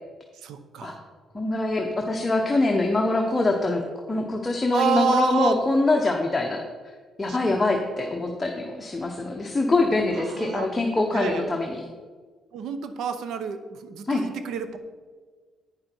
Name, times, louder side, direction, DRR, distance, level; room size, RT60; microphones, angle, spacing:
voice 1, 0.4-1.0 4.7-5.5 7.2-7.6 10.2-10.7 11.1-11.5 12.5-14.8, right 7 dB, 80° right, 10 dB, 0.8 m, -29 dB
voice 2, 1.3-6.6 7.2-11.8 14.1-14.2, left 2 dB, 20° left, 1 dB, 1.0 m, -24 dB
9.0 x 7.2 x 4.6 m, 1.5 s
cardioid pair, 90°, 0 cm